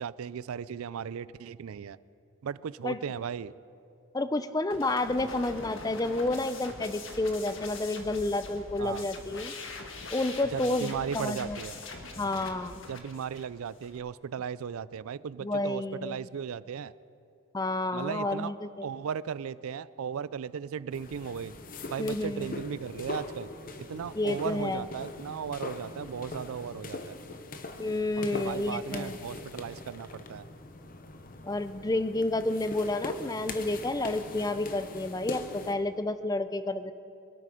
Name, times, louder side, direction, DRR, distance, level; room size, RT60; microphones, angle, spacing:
voice 1, 0.0-2.0 2.4-3.5 8.8-9.1 10.5-11.8 12.9-16.9 17.9-18.5 18.8-21.5 21.9-23.5 23.8-27.2 28.2-30.5, right 7 dB, 85° right, 18 dB, 0.4 m, -36 dB
voice 2, 4.1-9.5 10.1-11.6 12.2-12.8 15.4-16.3 17.5-18.9 22.0-22.6 24.2-24.8 27.8-29.2 31.4-36.9, left 2 dB, 15° left, 12 dB, 0.5 m, -30 dB
sound 1, 4.7-14.0, left 3 dB, 65° left, 1.6 m, -43 dB
sound 2, 20.9-35.8, left 2 dB, 40° left, 0.9 m, -41 dB
23.0 x 12.5 x 5.0 m, 2.6 s
head